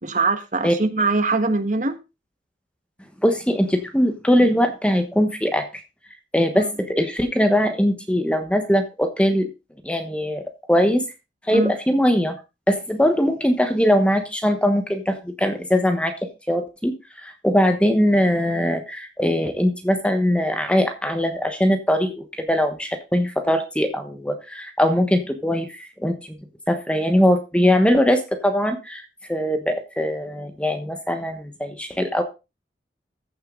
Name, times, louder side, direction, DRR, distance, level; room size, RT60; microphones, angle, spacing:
voice 1, 0.0-2.0 11.5-11.7, right 3 dB, 45° right, 8 dB, 1.5 m, -22 dB
voice 2, 3.2-5.7 6.3-9.5 9.8-10.4 10.7-11.0 11.5-12.4 12.7-16.1 16.5-26.1 26.7-32.2, equal, 5° left, 7 dB, 1.1 m, -21 dB
14.5 x 6.7 x 3.8 m, 0.27 s
head